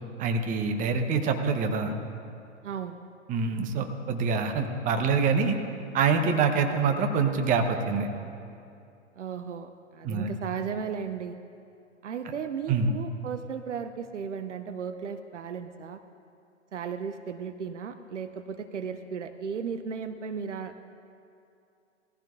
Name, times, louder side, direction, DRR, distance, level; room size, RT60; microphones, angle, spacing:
voice 1, 0.2-1.9 3.3-5.6 5.9-8.1 10.0-10.3 12.7-12.9, right 5 dB, 20° right, 5 dB, 1.0 m, -25 dB
voice 2, 2.6-3.0 9.2-11.4 12.0-16.0 16.7-20.8, right 6 dB, 70° right, 10 dB, 0.7 m, -35 dB
20.0 x 15.0 x 2.6 m, 2.6 s
figure-of-eight pair, 110°, 38 cm